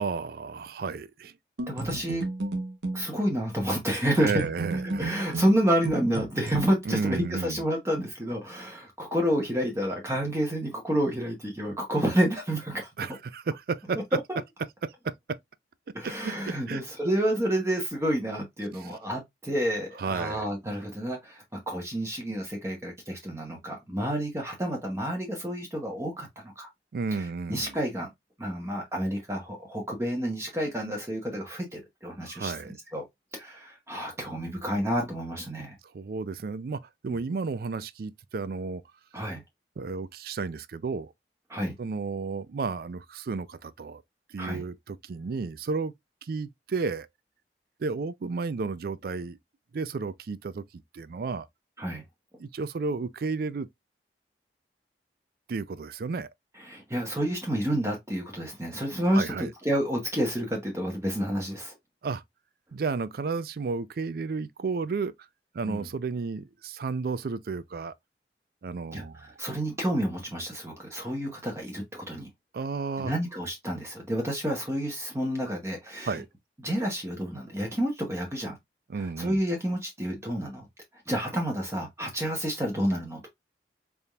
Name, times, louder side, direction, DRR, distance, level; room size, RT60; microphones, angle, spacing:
voice 1, 0.0-1.3 4.2-5.1 6.9-7.6 13.0-14.0 14.8-15.4 16.0-16.8 20.0-20.5 26.9-27.8 32.2-32.7 35.9-38.8 39.8-41.1 41.8-44.0 44.3-45.9 46.2-47.1 47.8-49.4 49.7-50.6 50.9-51.5 52.4-53.7 55.5-56.3 59.1-59.5 62.0-62.2 62.7-65.1 65.5-67.9 68.6-69.3 72.5-73.1 76.1-76.3 78.9-79.4, right 4 dB, 55° right, 0.4 m, -32 dB
sound 1, 1.6-3.1 4.3-6.6, right 2 dB, 80° right, 1.0 m, -33 dB
voice 2, 1.7-2.2 2.9-4.5 5.0-12.9 14.1-14.4 15.9-26.7 27.1-28.1 28.4-33.0 33.3-35.8 37.1-37.2 39.1-39.4 41.5-41.8 44.4-44.6 51.8-52.0 56.6-61.7 65.6-65.9 68.9-72.3 73.0-76.2 76.6-78.6 78.9-80.7 81.1-83.3, equal, 15° right, 0.9 m, -29 dB
4.2 x 3.5 x 2.3 m
head